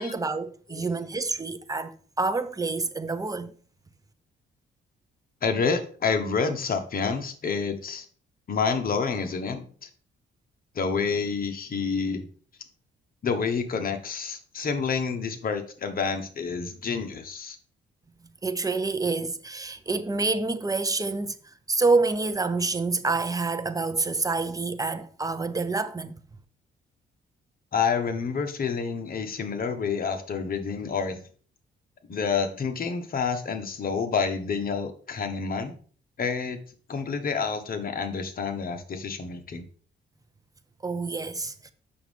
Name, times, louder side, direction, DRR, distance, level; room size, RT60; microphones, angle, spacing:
voice 1, 0.0-3.5 18.4-21.4 21.7-26.1 40.8-41.7, right 3 dB, 15° right, 0.8 m, -27 dB
voice 2, 5.4-8.0 8.5-9.9 10.7-12.3 13.2-17.6 27.7-31.2 32.1-35.7 36.2-36.6 36.9-39.6, left 5 dB, 45° left, 1.4 m, -28 dB
7.6 x 6.2 x 3.5 m
cardioid pair, 90°, 20 cm